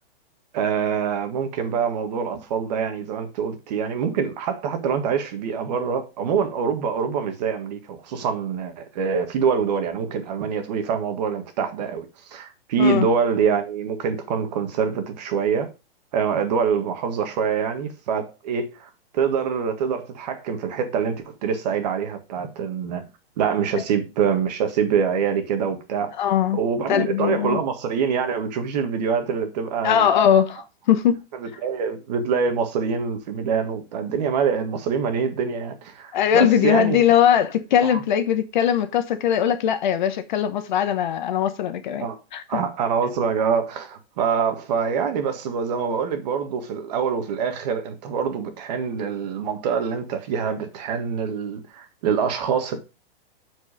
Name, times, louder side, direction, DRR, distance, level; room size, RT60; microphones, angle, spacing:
voice 1, 0.5-15.7 16.1-23.0 23.4-26.1 26.5-30.1 31.3-37.0 37.9-38.0 42.0-42.2 42.5-52.8, right 6 dB, 40° right, 1.6 m, -25 dB
voice 2, 26.2-26.6 26.9-27.6 29.8-31.2 36.1-42.6, left 9 dB, 50° left, 1.1 m, -20 dB
9.7 x 4.8 x 5.0 m
hypercardioid pair, 160°, 30 cm